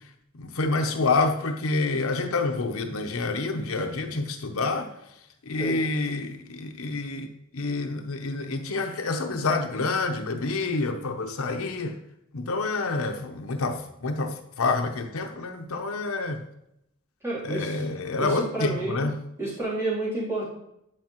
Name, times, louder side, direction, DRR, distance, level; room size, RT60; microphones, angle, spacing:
voice 1, 0.3-4.9 5.4-7.3 7.5-12.0 12.3-16.4 17.4-19.2, left 3 dB, 80° left, 5 dB, 0.8 m, -28 dB
voice 2, 17.2-17.9 18.2-19.1 19.4-20.5, right 2 dB, 10° right, -9 dB, 3.1 m, -30 dB
11.0 x 4.9 x 3.0 m, 0.80 s
head